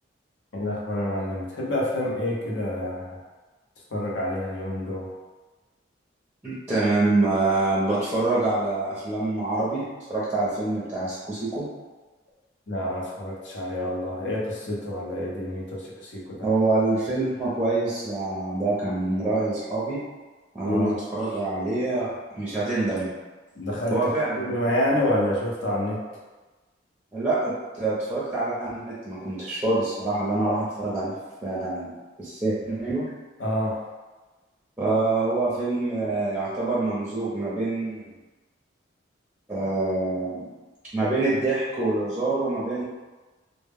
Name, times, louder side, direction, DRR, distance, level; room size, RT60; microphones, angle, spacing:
voice 1, 0.5-3.2 3.9-5.1 12.7-16.5 20.7-20.9 23.6-24.0 24.4-26.0 33.4-33.8, left 1 dB, 70° left, -4 dB, 0.6 m, -28 dB
voice 2, 6.4-11.7 16.4-20.0 20.5-22.1 22.3-23.1 23.9-24.5 24.9-25.0 27.1-31.1 31.4-31.9 32.2-33.1 34.8-38.1 39.5-40.4 40.9-42.8, right 2 dB, 10° right, -9 dB, 0.5 m, -26 dB
2.1 x 2.0 x 3.4 m, 1.2 s
head